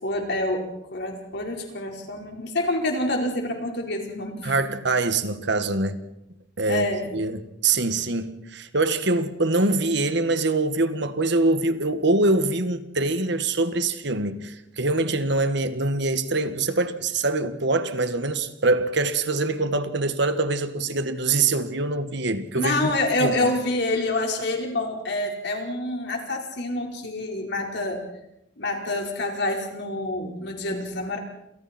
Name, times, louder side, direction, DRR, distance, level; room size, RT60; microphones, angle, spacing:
voice 1, 0.0-4.7 6.7-7.1 22.5-28.0 28.6-31.2, left 2 dB, 65° left, 4.7 m, -27 dB
voice 2, 4.4-6.0 6.6-22.9 23.2-23.5, right 2 dB, 65° right, 1.8 m, -24 dB
29.5 x 28.0 x 4.5 m
head